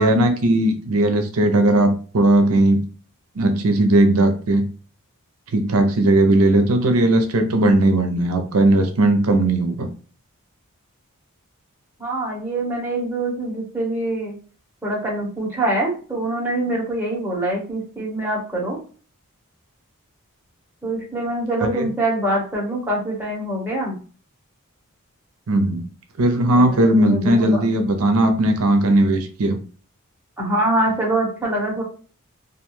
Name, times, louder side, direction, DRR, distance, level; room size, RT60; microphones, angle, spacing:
voice 1, 0.0-2.8 3.4-4.6 5.5-9.9 21.6-21.9 25.5-25.8 26.2-29.6, right 1 dB, 75° right, 6 dB, 0.5 m, -17 dB
voice 2, 12.0-14.3 14.8-18.8 20.8-24.0 26.5-27.6 30.4-31.8, right 1 dB, 10° right, -4 dB, 0.9 m, -24 dB
2.4 x 2.2 x 3.0 m, 0.39 s
head